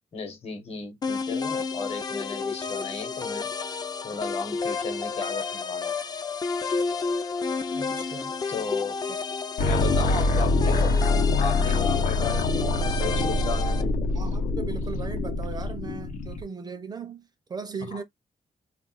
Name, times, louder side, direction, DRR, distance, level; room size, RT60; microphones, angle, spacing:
voice 1, 0.1-3.5 4.0-5.9 8.5-8.9 9.6-11.0 11.4-14.0 17.8-18.0, left 5 dB, 50° left, 1.0 m, -35 dB
sound 1, 1.0-13.8, left 5 dB, 30° left, 0.4 m, -31 dB
voice 2, 7.7-8.3 9.1-9.2 14.1-18.0, right 5 dB, 30° right, 0.5 m, -38 dB
sound 2, 9.6-16.4, left 2 dB, 75° left, 0.8 m, -25 dB
2.4 x 2.2 x 3.9 m
wide cardioid pair, 170°, 13 cm